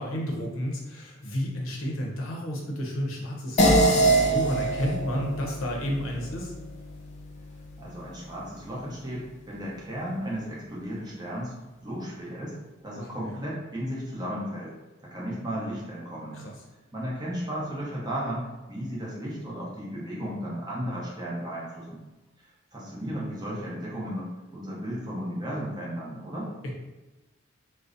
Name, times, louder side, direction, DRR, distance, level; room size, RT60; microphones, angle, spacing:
voice 1, 0.0-6.5 13.2-13.4 16.3-16.5 26.6-26.7, equal, 80° left, -1 dB, 0.6 m, -31 dB
sound 1, 3.6-8.3, right 1 dB, 35° left, 0.4 m, -25 dB
voice 2, 7.8-11.5 11.8-12.5 12.8-14.7 15.0-16.4 16.9-22.0 22.7-26.5, equal, 20° right, -6 dB, 0.6 m, -34 dB
2.6 x 2.0 x 2.4 m, 1.1 s
head